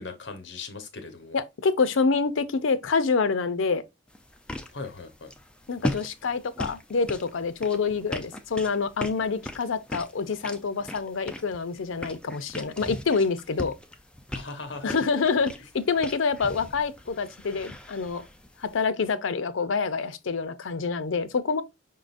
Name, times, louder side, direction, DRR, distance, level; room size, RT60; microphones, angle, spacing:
voice 1, 0.0-1.4 4.7-5.3 14.3-14.9, left 4 dB, 65° left, 1.0 m, -38 dB
voice 2, 1.3-3.8 5.7-13.7 14.8-18.3 18.6-21.6, left 4 dB, 80° left, 0.5 m, -27 dB
sound 1, 4.1-18.8, left 1 dB, 5° left, 0.4 m, -39 dB
5.5 x 3.7 x 2.5 m
head